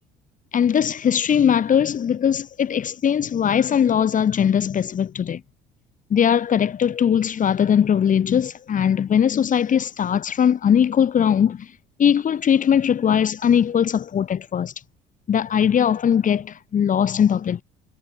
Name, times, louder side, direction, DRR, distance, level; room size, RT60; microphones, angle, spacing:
voice 1, 0.5-5.4 6.1-11.6 12.0-14.7 15.3-17.6, left 8 dB, 50° left, 4.3 m, -20 dB
supercardioid pair, 70°, 18 cm